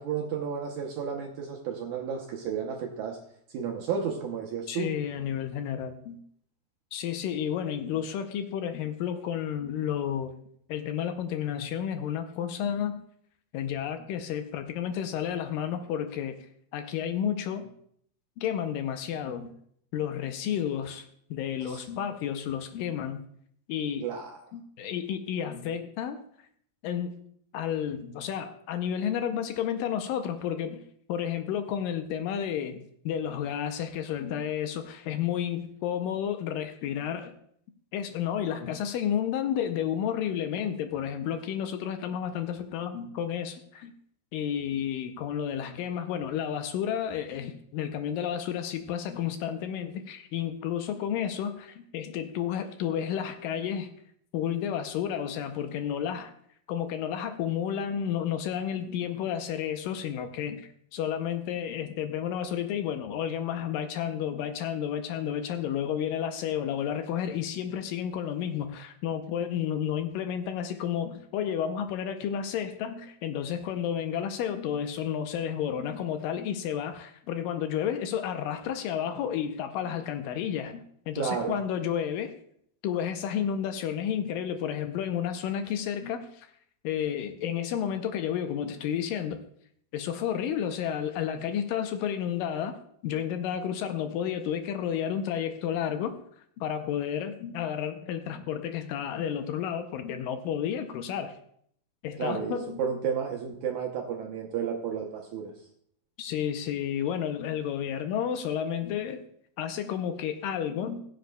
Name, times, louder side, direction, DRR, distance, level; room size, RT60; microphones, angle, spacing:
voice 1, 0.0-3.2 3.5-4.9 21.6-21.8 24.0-24.4 81.2-81.6 102.2-105.5, right 7 dB, 75° right, 1 dB, 1.8 m, -32 dB
voice 2, 4.7-6.2 6.9-10.3 10.7-13.0 13.5-16.4 16.7-17.7 18.4-19.5 19.9-23.2 23.7-24.1 24.5-26.2 26.8-27.1 27.5-30.8 31.1-37.3 37.9-43.9 44.3-53.9 54.3-56.3 56.7-82.3 82.8-86.5 86.8-89.4 89.9-92.7 93.0-96.1 96.6-101.4 102.0-102.8 106.2-109.2 109.6-111.0, left 9 dB, 80° left, 7 dB, 2.1 m, -31 dB
21.0 x 7.7 x 2.3 m, 0.66 s
omnidirectional pair, 4.4 m